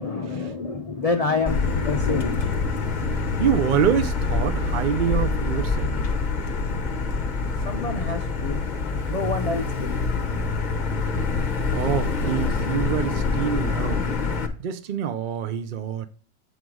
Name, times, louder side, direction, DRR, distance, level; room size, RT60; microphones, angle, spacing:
voice 1, 0.0-2.8 7.6-8.6 8.9-10.0 10.3-10.5, left 3 dB, 70° left, 0.3 m, -28 dB
Motor vehicle (road), 1.5-14.5, left 4 dB, 40° left, 0.8 m, -25 dB
voice 2, 3.4-5.9 11.7-14.0 14.6-16.1, right 8 dB, 65° right, 0.4 m, -26 dB
8.1 x 3.9 x 4.6 m
omnidirectional pair, 1.5 m